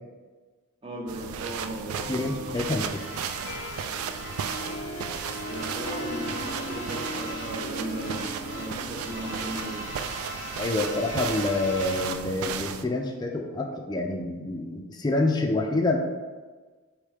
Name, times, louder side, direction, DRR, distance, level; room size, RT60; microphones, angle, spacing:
voice 1, 0.8-2.8 5.4-9.9, right 1 dB, 25° right, -2 dB, 0.7 m, -36 dB
sound 1, 1.1-12.8, right 7 dB, 85° right, 0.3 m, -35 dB
voice 2, 2.1-3.0 10.6-16.0, left 2 dB, 20° left, 1 dB, 0.3 m, -27 dB
sound 2, 2.5-4.8 5.1-7.7 7.9-12.1, right 1 dB, 65° right, 1.3 m, -39 dB
Harp, 3.5-10.3, left 1 dB, 80° left, 0.5 m, -39 dB
4.8 x 3.1 x 3.4 m, 1.4 s
head